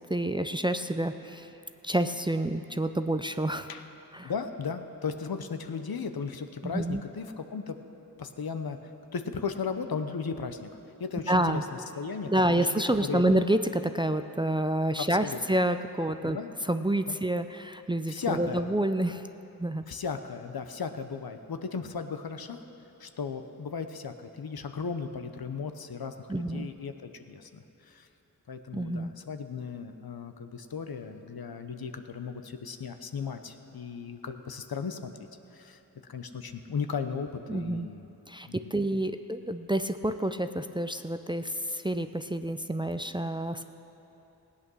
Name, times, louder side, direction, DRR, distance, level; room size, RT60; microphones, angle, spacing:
voice 1, 0.1-1.5 1.8-3.7 4.1-4.3 6.6-7.0 11.3-11.6 12.3-16.4 16.7-19.2 19.6-19.8 26.3-26.7 28.7-29.1 37.5-37.9 38.3-43.6, right 1 dB, 15° right, 9 dB, 0.5 m, -28 dB
voice 2, 4.2-7.8 8.2-10.7 11.0-11.6 12.0-13.2 15.0-15.4 16.2-16.5 17.1-17.2 18.1-18.7 19.9-22.6 23.0-28.1 28.5-35.8 36.1-38.1 38.5-38.8, left 5 dB, 65° left, 8 dB, 0.9 m, -36 dB
17.0 x 8.6 x 6.3 m, 3.0 s
cardioid pair, 45°, 38 cm